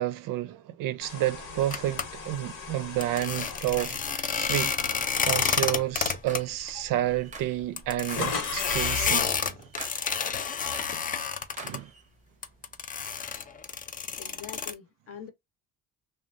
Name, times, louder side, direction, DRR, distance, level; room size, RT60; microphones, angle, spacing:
voice 1, 0.0-4.8 5.3-9.7 11.6-11.9, right 14 dB, 80° right, 0.5 m, -30 dB
sound 1, 1.0-5.2 5.8-6.0 6.9-7.0 7.2-9.2, left 5 dB, 85° left, 1.2 m, -37 dB
sound 2, 1.7-2.0 3.0-6.4 6.7-6.8 7.1-7.2 7.8-11.8 12.4-14.7, left 6 dB, 25° left, 0.3 m, -29 dB
sound 3, 3.5-4.1 4.6-5.1 5.5-5.9 6.2-7.6 7.9-8.4 8.8-9.3 9.6-10.2 10.6-11.1 11.6-12.0, right 4 dB, 25° right, 0.6 m, -45 dB
voice 2, 14.2-15.3, left 8 dB, 45° left, 0.7 m, -44 dB
2.9 x 2.3 x 2.4 m
cardioid pair, 135°, 32 cm